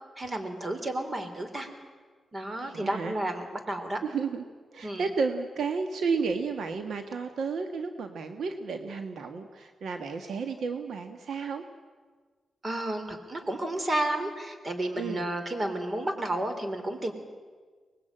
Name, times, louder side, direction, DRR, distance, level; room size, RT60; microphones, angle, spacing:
voice 1, 0.2-1.7 2.3-4.0 4.8-5.1 12.6-17.1, right 1 dB, 35° right, 7 dB, 3.7 m, -31 dB
voice 2, 2.6-3.1 4.0-4.4 4.7-11.6 14.9-15.2, right 5 dB, 80° right, 7 dB, 1.4 m, -32 dB
24.0 x 20.0 x 8.9 m, 1.5 s
cardioid pair, 80°, 0 cm